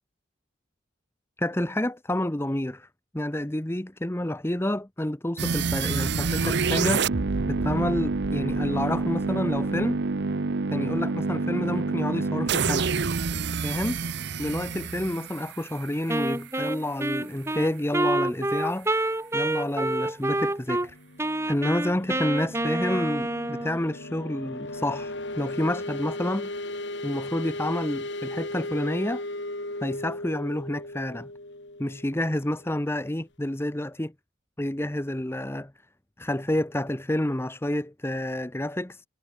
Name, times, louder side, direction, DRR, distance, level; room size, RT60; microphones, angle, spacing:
voice 1, 1.4-2.9 3.1-7.1 7.5-10.0 10.7-12.9 13.6-14.0 14.4-18.9 19.3-20.9 21.5-26.6 27.0-29.2 29.8-31.3 31.8-34.1 34.6-35.7 36.2-39.0, left 1 dB, 10° left, 0.9 m, -29 dB
sound 1, 5.4-16.3, right 4 dB, 60° right, 0.7 m, -27 dB
Wind instrument woodwind instrument, 16.1-20.9 21.2-23.8, right 1 dB, 15° right, 2.1 m, -28 dB
sound 2, 20.4-32.9, left 1 dB, 60° left, 6.4 m, -37 dB
head